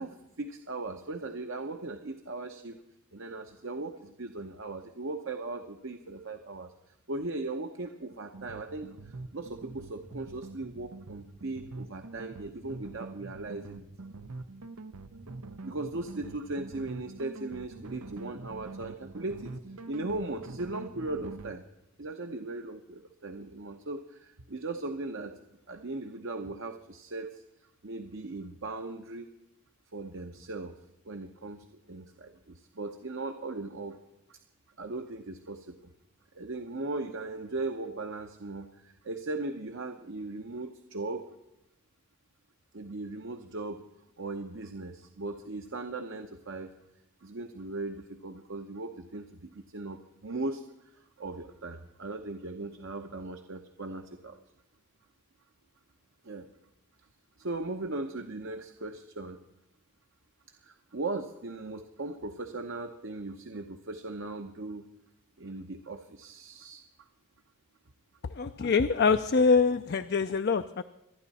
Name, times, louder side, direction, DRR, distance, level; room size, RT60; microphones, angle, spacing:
voice 1, 0.0-2.8 3.1-6.7 7.1-13.9 15.6-19.5 19.9-21.6 22.0-25.3 25.7-27.4 27.8-29.3 29.9-30.7 31.0-34.0 34.3-34.4 34.8-35.8 36.3-41.3 42.7-43.8 44.2-46.7 47.2-54.4 56.2-56.5 57.4-59.4 60.6-64.9 65.4-66.8, right 2 dB, 60° right, 6 dB, 0.8 m, -38 dB
sound 1, 8.3-21.6, right 3 dB, 85° right, 0.8 m, -45 dB
voice 2, 68.3-70.8, left 5 dB, 50° left, 9 dB, 0.4 m, -24 dB
26.0 x 10.0 x 4.2 m, 0.90 s
head